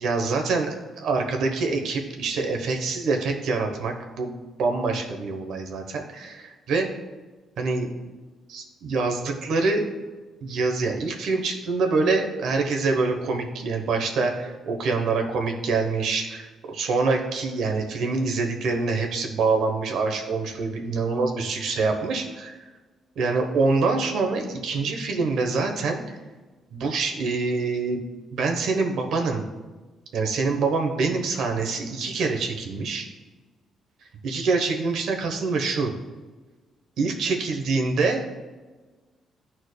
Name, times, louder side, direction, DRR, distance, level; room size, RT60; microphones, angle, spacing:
voice 1, 0.0-4.3 4.6-6.9 7.6-7.9 8.5-9.9 10.4-22.2 23.2-26.2 26.7-28.0 28.3-29.5 30.1-33.1 34.2-35.9 37.0-38.2, right 4 dB, 75° right, 3 dB, 1.0 m, -25 dB
11.5 x 4.4 x 2.3 m, 1.3 s
cardioid pair, 90°, 0 cm